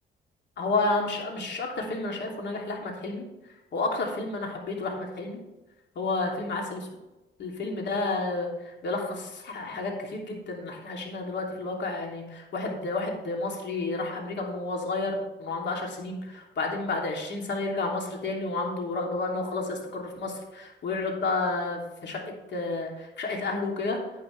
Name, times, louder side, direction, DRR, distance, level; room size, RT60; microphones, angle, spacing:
voice 1, 0.6-3.2 3.7-5.4 5.9-6.9 7.4-8.5 8.8-22.2 22.5-24.0, left 3 dB, 60° left, 0 dB, 3.0 m, -31 dB
10.0 x 9.7 x 3.4 m, 1.0 s
cardioid pair, 90°, 20 cm